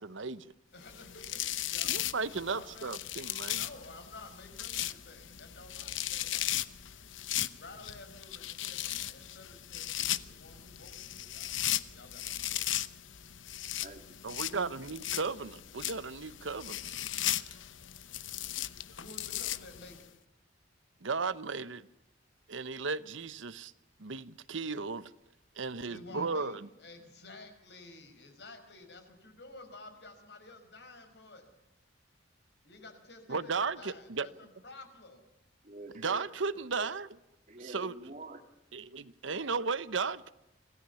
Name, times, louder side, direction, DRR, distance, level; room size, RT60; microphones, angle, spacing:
voice 1, 0.0-0.5 1.8-3.6 14.2-16.9 17.3-17.5 21.0-21.9 22.5-23.7 24.0-25.1 25.6-26.7 33.3-34.3 35.9-37.2 37.6-37.9 38.7-40.3, right 4 dB, 85° right, 1.0 m, -35 dB
voice 2, 0.7-2.0 2.4-2.9 3.5-6.5 7.5-12.9 14.8-15.6 18.9-20.1 25.8-31.5 32.6-35.2, left 2 dB, 60° left, 5.2 m, -52 dB
sound 1, 0.9-20.0, left 13 dB, 85° left, 0.9 m, -37 dB
voice 3, 13.8-14.2 35.6-36.2 37.5-38.4, right 2 dB, 40° right, 2.4 m, -46 dB
26.0 x 17.5 x 7.0 m
head